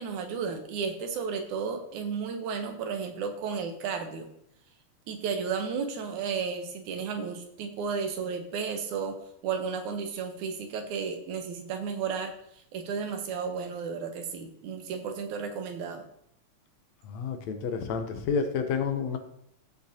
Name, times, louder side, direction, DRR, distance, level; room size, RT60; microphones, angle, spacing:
voice 1, 0.0-4.3 5.1-9.2 9.4-12.3 12.7-16.0, right 6 dB, 90° right, 6 dB, 2.5 m, -33 dB
voice 2, 17.0-19.2, left 5 dB, 75° left, 7 dB, 2.0 m, -30 dB
15.5 x 6.3 x 2.8 m, 0.72 s
omnidirectional pair, 3.3 m